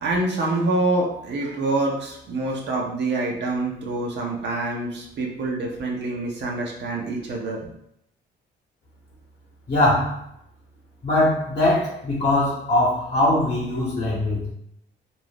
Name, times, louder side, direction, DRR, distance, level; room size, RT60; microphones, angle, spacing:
voice 1, 0.0-7.6, right 2 dB, 60° right, -1 dB, 0.7 m, -26 dB
voice 2, 9.7-10.2 11.0-14.5, left 1 dB, 40° left, -5 dB, 0.9 m, -21 dB
2.6 x 2.1 x 3.2 m, 0.75 s
cardioid pair, 90°, 20 cm